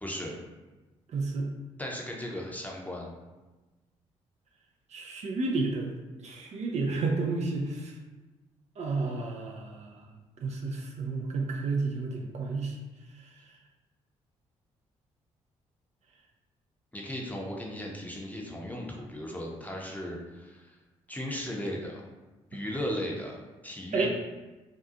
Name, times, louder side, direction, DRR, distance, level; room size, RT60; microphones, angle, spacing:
voice 1, 0.0-0.3 1.8-3.1 16.9-20.8 21.1-22.1 22.5-24.1, equal, 10° left, -2 dB, 0.6 m, -36 dB
voice 2, 1.1-1.5 4.9-5.9 6.2-7.9 8.8-10.1 10.4-12.7 23.9-24.1, right 3 dB, 45° right, 0 dB, 0.4 m, -31 dB
2.5 x 2.3 x 2.5 m, 1.2 s
hypercardioid pair, 45°, 16 cm